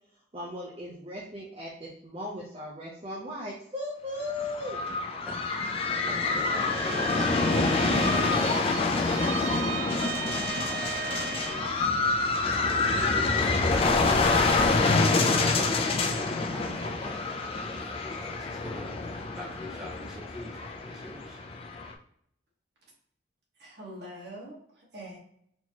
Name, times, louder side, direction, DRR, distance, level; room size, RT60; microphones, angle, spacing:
voice 1, 0.3-4.8, left 1 dB, 30° right, -5 dB, 0.7 m, -37 dB
sound 1, 4.3-21.9, left 3 dB, 30° left, 0.4 m, -27 dB
voice 2, 5.2-7.7 8.0-11.8 12.4-17.3 17.6-21.4, equal, 5° right, -5 dB, 0.9 m, -45 dB
sound 2, 6.4-11.6, left 2 dB, 80° left, 0.9 m, -46 dB
Bowed string instrument, 6.5-11.8, right 6 dB, 85° right, 0.4 m, -36 dB
voice 3, 23.6-25.2, right 1 dB, 60° right, -3 dB, 1.5 m, -44 dB
4.3 x 2.9 x 2.9 m, 0.70 s
head